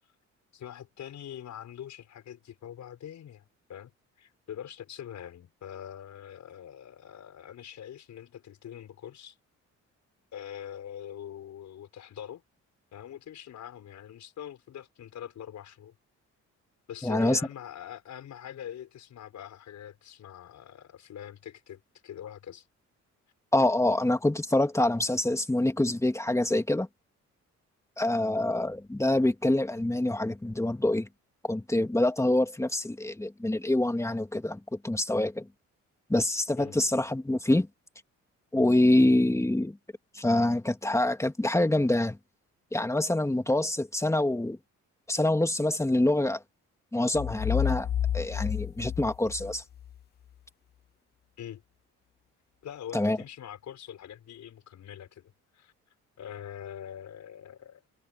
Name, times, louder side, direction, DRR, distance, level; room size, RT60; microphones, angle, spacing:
voice 1, 0.5-3.4 3.7-9.4 10.3-12.4 12.9-15.9 16.9-22.7 36.6-36.7 51.4-51.6 52.6-55.7 56.2-57.8, left 10 dB, 70° left, 6.3 m, -43 dB
voice 2, 17.0-17.4 23.5-26.9 28.0-31.1 31.4-35.5 36.1-37.7 38.5-39.8 40.1-42.2 42.7-44.6 45.1-46.4 46.9-47.9 48.1-49.6 52.9-53.2, left 1 dB, 10° left, 2.4 m, -26 dB
sound 1, 47.1-50.0, left 10 dB, 35° left, 0.4 m, -30 dB
cardioid pair, 90°, 30 cm